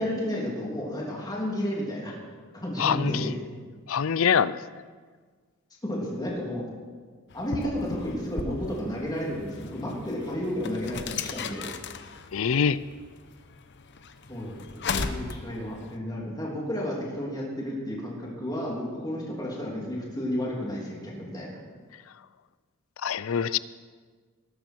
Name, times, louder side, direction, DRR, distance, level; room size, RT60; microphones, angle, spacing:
voice 1, 0.0-2.2 2.6-3.3 5.8-6.7 7.3-11.7 14.3-14.7 14.9-21.5, left 1 dB, 20° left, -3 dB, 3.1 m, -32 dB
voice 2, 2.8-3.4 3.9-4.6 12.3-12.8 23.0-23.6, left 7 dB, 80° left, 17 dB, 0.5 m, -24 dB
sound 1, 7.3-16.0, left 4 dB, 60° left, 0.8 m, -37 dB
20.0 x 12.0 x 4.5 m, 1.5 s
head